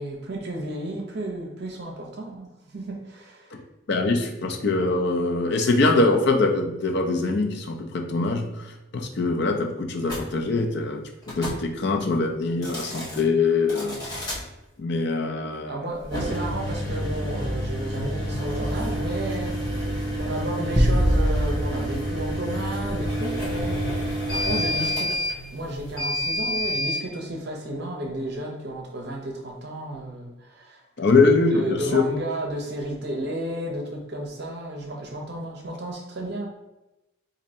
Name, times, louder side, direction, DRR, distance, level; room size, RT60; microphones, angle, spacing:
voice 1, 0.0-3.5 12.6-12.7 15.7-25.3 25.5-30.8 31.2-36.5, right 1 dB, 55° right, 1 dB, 0.6 m, -33 dB
voice 2, 3.9-8.5 8.9-14.4 14.8-15.7 31.0-32.0, left 3 dB, 55° left, 3 dB, 0.5 m, -23 dB
sound 1, 10.0-10.2 11.2-11.6 12.5-13.2 13.7-14.4 16.0-27.0, equal, 20° left, 1.0 m, -29 dB
sound 2, 20.8-23.2, equal, 5° right, 0.4 m, -24 dB
2.7 x 2.6 x 4.1 m, 0.97 s
head